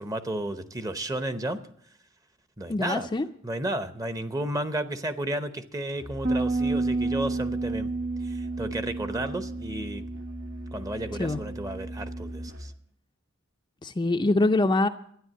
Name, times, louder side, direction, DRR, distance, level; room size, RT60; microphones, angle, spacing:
voice 1, 0.0-1.6 2.6-3.1 3.4-7.9 8.2-10.0 10.7-12.7, right 1 dB, 15° right, 10 dB, 0.8 m, -32 dB
voice 2, 2.7-3.2 11.2-11.4 13.8-14.9, left 2 dB, 20° left, 6 dB, 0.5 m, -24 dB
Musical instrument, 5.9-12.8, equal, 85° right, 2.8 m, -41 dB
Bass guitar, 6.2-12.5, right 3 dB, 40° right, 1.5 m, -31 dB
13.0 x 9.8 x 7.6 m, 0.66 s
head